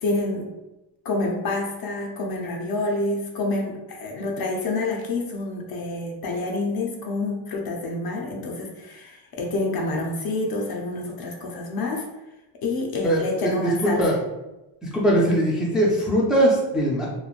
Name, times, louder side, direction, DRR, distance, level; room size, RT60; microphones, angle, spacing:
voice 1, 0.0-0.5 1.0-12.1 12.6-14.0, left 2 dB, 50° left, 1 dB, 0.5 m, -28 dB
voice 2, 13.0-14.2 14.9-17.1, right 1 dB, ahead, -4 dB, 0.4 m, -21 dB
3.1 x 2.1 x 2.4 m, 1.0 s
cardioid pair, 130°, 47 cm